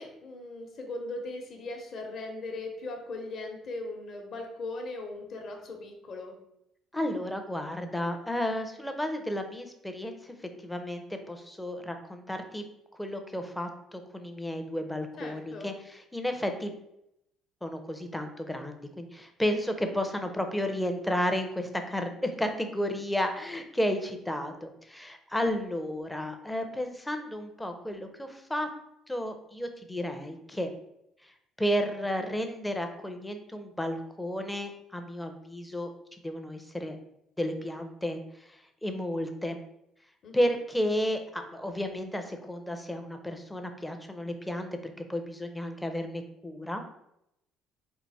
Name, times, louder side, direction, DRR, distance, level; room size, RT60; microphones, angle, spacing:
voice 1, 0.0-6.3 15.2-15.7 40.2-40.4, left 2 dB, 45° left, 2 dB, 0.9 m, -39 dB
voice 2, 6.9-12.6 13.0-16.7 17.6-28.7 29.1-30.7 31.2-31.3 31.6-35.9 36.2-37.0 37.4-38.2 38.5-39.6 40.3-46.9, equal, 5° left, 6 dB, 0.5 m, -32 dB
4.6 x 2.5 x 4.0 m, 0.81 s
cardioid pair, 140°, 0 cm